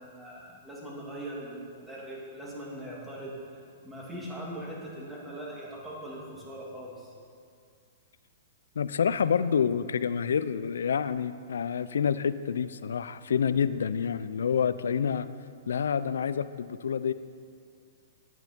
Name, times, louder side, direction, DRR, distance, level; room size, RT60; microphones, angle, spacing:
voice 1, 0.0-3.6 3.8-7.1, right 1 dB, 10° right, -5 dB, 2.5 m, -41 dB
voice 2, 8.8-15.3 15.7-17.1, left 7 dB, 80° left, 14 dB, 0.4 m, -28 dB
9.6 x 9.5 x 4.4 m, 2.3 s
hypercardioid pair, 135°, 0 cm